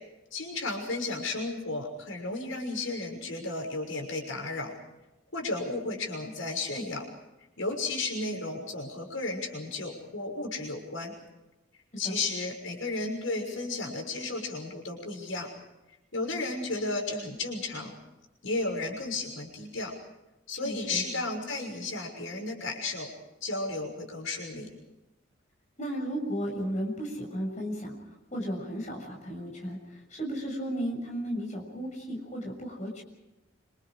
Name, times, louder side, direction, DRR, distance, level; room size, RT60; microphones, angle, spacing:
voice 1, 0.3-4.7 5.3-7.0 7.6-11.1 12.0-15.5 16.1-17.9 18.4-19.9 20.5-23.1 23.4-24.7, left 3 dB, 80° left, 2 dB, 6.3 m, -33 dB
voice 2, 20.6-21.0 25.8-27.9 28.3-33.0, equal, 35° left, 1 dB, 6.7 m, -34 dB
27.5 x 27.0 x 5.1 m, 0.98 s
head